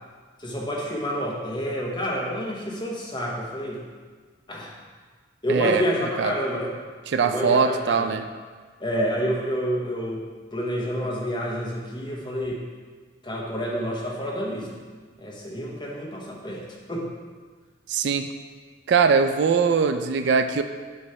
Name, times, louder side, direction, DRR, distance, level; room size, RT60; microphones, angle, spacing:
voice 1, 0.4-3.8 4.5-4.7 5.4-6.7 7.2-8.1 8.8-10.2 10.5-12.6 13.2-14.7 15.2-16.6 16.9-17.1, equal, 20° left, -3 dB, 1.0 m, -28 dB
voice 2, 5.5-5.8 6.2-6.3 7.1-8.2 17.9-18.3 18.9-20.6, right 5 dB, 60° right, 8 dB, 0.3 m, -21 dB
7.9 x 3.1 x 5.6 m, 1.5 s
head